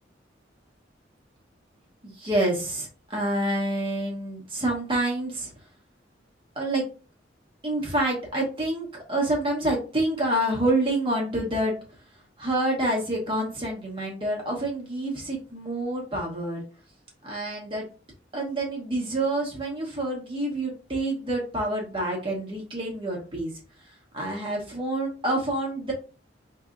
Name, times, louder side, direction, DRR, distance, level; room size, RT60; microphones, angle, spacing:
voice 1, 2.0-5.5 6.6-6.9 7.6-11.7 12.4-16.6 17.2-17.9 18.3-23.5 24.1-25.9, right 1 dB, 30° right, -2 dB, 1.0 m, -27 dB
4.6 x 2.8 x 2.5 m, 0.35 s
head